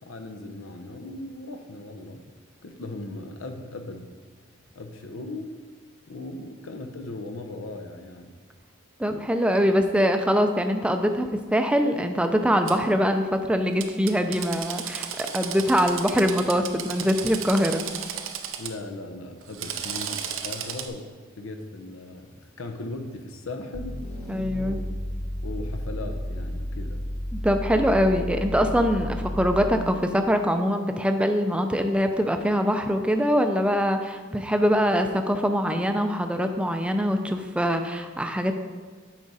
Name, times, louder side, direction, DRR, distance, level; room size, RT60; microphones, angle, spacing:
voice 1, 0.0-2.2 2.6-4.1 4.7-5.5 6.1-8.3 18.6-21.1 21.4-24.0 24.5-24.9 25.4-27.0, left 2 dB, 90° left, 6 dB, 0.8 m, -38 dB
voice 2, 9.0-17.9 24.3-24.8 27.3-38.5, equal, 5° right, 6 dB, 0.4 m, -23 dB
Drill, 12.7-12.8 13.8-18.7 19.4-20.9, right 8 dB, 85° right, 0.6 m, -34 dB
sound 1, 23.7-29.9, equal, 40° left, 1.3 m, -32 dB
8.4 x 4.9 x 4.1 m, 1.5 s
head